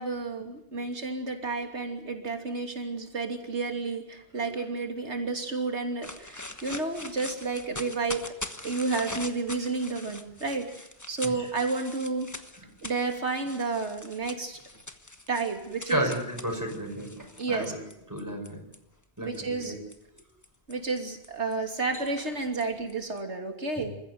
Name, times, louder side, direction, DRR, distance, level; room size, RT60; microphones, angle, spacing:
voice 1, 0.0-8.3 8.6-12.3 12.8-14.6 15.3-16.0 17.4-17.7 19.2-19.7 20.7-23.9, right 3 dB, 80° right, 4 dB, 3.2 m, -31 dB
sound 1, 6.0-18.8 19.3-23.2, left 2 dB, 15° left, 1.3 m, -43 dB
voice 2, 15.9-17.8 18.1-18.6 19.2-19.7 23.8-23.9, right 1 dB, 15° right, 2 dB, 5.7 m, -32 dB
27.5 x 15.0 x 9.4 m, 0.81 s
omnidirectional pair, 1.1 m